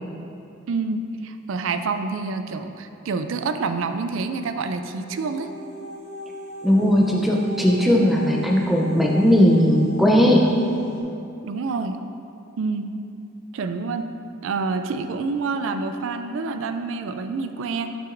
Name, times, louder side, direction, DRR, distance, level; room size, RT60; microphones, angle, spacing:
voice 1, 0.7-5.5 11.4-12.0 12.6-12.9 13.5-14.1 14.4-17.9, right 4 dB, 65° right, 8 dB, 0.3 m, -27 dB
sound 1, 4.9-11.0, right 2 dB, 90° right, 1.0 m, -37 dB
voice 2, 6.6-10.4, equal, ahead, -1 dB, 0.5 m, -18 dB
8.6 x 5.9 x 2.6 m, 2.6 s
head